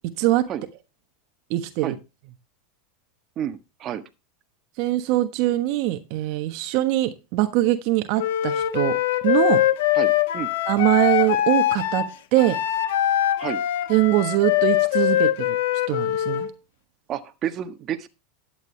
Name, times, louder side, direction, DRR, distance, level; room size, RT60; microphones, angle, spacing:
voice 1, 1.5-1.9 4.8-9.0 9.2-9.6 10.7-12.0 12.3-12.6 13.9-15.6 15.9-16.5, right 16 dB, 60° right, 1.2 m, -22 dB
voice 2, 3.4-4.0 9.9-10.5 13.4-13.6 17.1-18.1, right 10 dB, 40° right, 1.4 m, -30 dB
Wind instrument woodwind instrument, 8.2-16.5, left 13 dB, 75° left, 1.3 m, -22 dB
12.0 x 9.1 x 3.3 m
hypercardioid pair, 115°, 0 cm